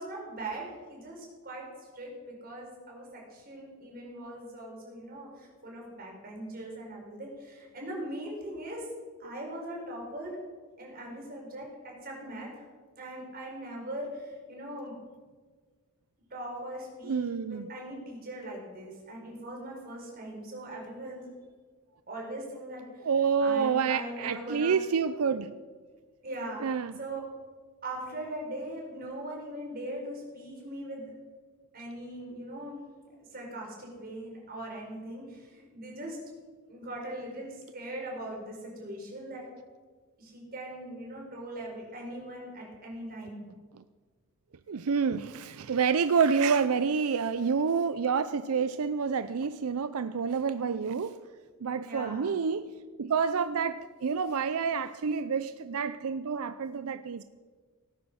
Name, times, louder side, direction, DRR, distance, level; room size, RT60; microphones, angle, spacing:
voice 1, 0.0-8.9 9.2-10.4 10.8-12.6 12.9-15.0 16.3-21.3 22.1-23.1 23.4-24.7 26.2-26.6 27.0-27.2 27.8-31.1 31.7-32.8 33.2-36.2 36.7-39.5 40.2-43.5 51.8-52.4, right 1 dB, 45° right, 4.8 m, -40 dB
voice 2, 17.0-17.7 23.0-25.5 26.6-26.9 44.7-51.2 51.6-52.7 53.0-57.2, right 6 dB, 85° right, 0.5 m, -28 dB
18.0 x 9.6 x 6.3 m
head